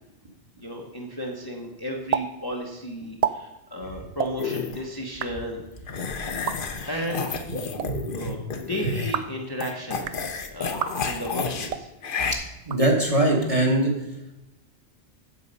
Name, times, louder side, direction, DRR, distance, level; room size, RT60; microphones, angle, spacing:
voice 1, 0.6-5.6 6.9-7.4 8.1-10.8 11.1-11.9, equal, 20° left, 0 dB, 1.0 m, -34 dB
sound 1, 2.1-2.3 2.5-2.6 3.0-3.3 4.1-4.3 5.0-5.3 6.3-6.6 7.6-7.9 8.9-9.4 9.9-10.2 10.7-10.9 11.6-11.9 12.6-13.3, right 8 dB, 55° right, 0.4 m, -30 dB
sound 2, 4.4-4.8 5.9-9.2 9.6-11.7 12.0-12.3, left 5 dB, 55° left, 1.0 m, -31 dB
voice 2, 7.8-8.4 12.6-13.9, right 1 dB, 30° right, 0 dB, 1.8 m, -22 dB
8.4 x 7.4 x 5.4 m, 0.93 s
omnidirectional pair, 1.1 m